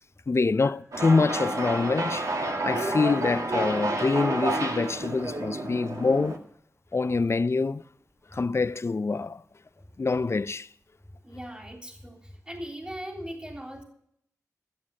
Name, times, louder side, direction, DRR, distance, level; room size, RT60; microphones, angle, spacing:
voice 1, 0.3-6.4 6.9-7.8 8.3-9.4 10.0-10.7, left 4 dB, 45° left, 0.5 m, -25 dB
sound 1, 0.9-6.4, right 2 dB, 65° right, 2.1 m, -30 dB
voice 2, 11.2-12.2 12.5-13.8, equal, 15° right, 3.3 m, -39 dB
14.5 x 8.0 x 7.4 m
cardioid pair, 50°, 6 cm